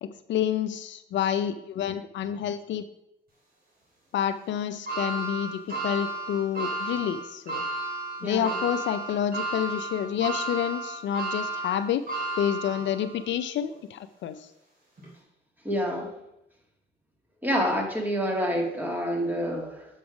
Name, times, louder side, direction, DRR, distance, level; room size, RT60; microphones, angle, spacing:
voice 1, 0.0-2.8 4.1-7.6 8.2-12.0 12.4-14.5, left 9 dB, 70° left, 11 dB, 0.5 m, -29 dB
sound 1, 4.9-13.2 13.7-13.8 15.0-15.1, right 2 dB, 50° right, 3.3 m, -33 dB
voice 2, 8.2-8.6 15.6-16.1 17.4-19.9, equal, 10° right, 0 dB, 2.0 m, -27 dB
7.0 x 5.4 x 4.9 m, 0.86 s
cardioid pair, 90°, 20 cm